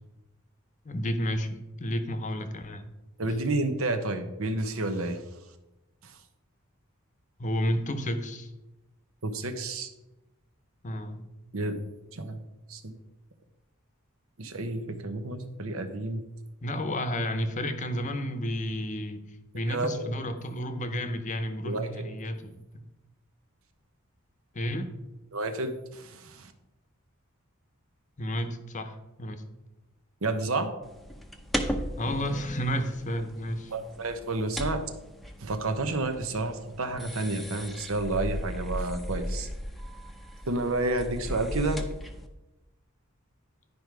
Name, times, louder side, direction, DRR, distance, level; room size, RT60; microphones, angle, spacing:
voice 1, 0.8-2.9 7.4-8.5 10.8-11.2 16.6-19.2 19.5-22.8 24.5-24.9 28.2-29.4 32.0-33.7, equal, 35° left, 8 dB, 0.8 m, -31 dB
voice 2, 3.2-5.2 6.0-6.1 9.2-9.9 11.5-11.8 12.1-12.4 12.7-13.0 14.4-16.2 19.7-20.1 21.6-21.9 25.3-26.5 30.2-30.7 33.7-34.8 35.4-39.5 40.4-41.8, right 2 dB, 75° right, 8 dB, 0.9 m, -30 dB
sound 1, 30.8-42.3, equal, ahead, 0.7 m, -37 dB
10.5 x 5.2 x 4.7 m, 1.0 s
head